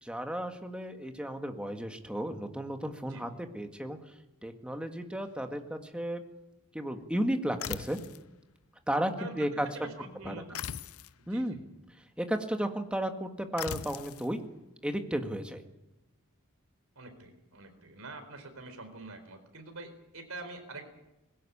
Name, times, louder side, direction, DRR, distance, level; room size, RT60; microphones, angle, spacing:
voice 1, 0.0-4.0 4.4-6.2 6.7-8.0 8.9-9.7 10.3-10.4 11.3-11.6 12.2-14.4 14.8-15.6, right 1 dB, 5° right, 5 dB, 1.8 m, -33 dB
sound 1, 7.6-8.3 10.5-11.2 13.6-14.3, left 9 dB, 75° left, 0.7 m, -39 dB
voice 2, 9.2-10.7 11.2-11.6 17.0-20.9, right 2 dB, 70° right, 7 dB, 4.3 m, -46 dB
20.5 x 17.5 x 8.6 m, 0.95 s
head